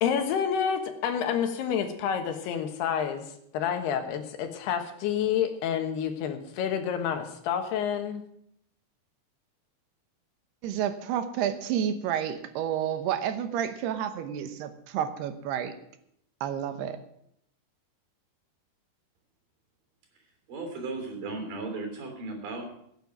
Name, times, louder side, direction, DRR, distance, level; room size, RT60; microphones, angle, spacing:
voice 1, 0.0-3.2 3.5-8.2, left 8 dB, 85° left, 6 dB, 3.4 m, -28 dB
voice 2, 10.6-15.8 16.4-17.0, right 9 dB, 85° right, 9 dB, 3.0 m, -30 dB
voice 3, 20.5-22.6, right 3 dB, 60° right, 3 dB, 4.8 m, -36 dB
17.0 x 9.1 x 6.0 m, 0.73 s
omnidirectional pair, 4.6 m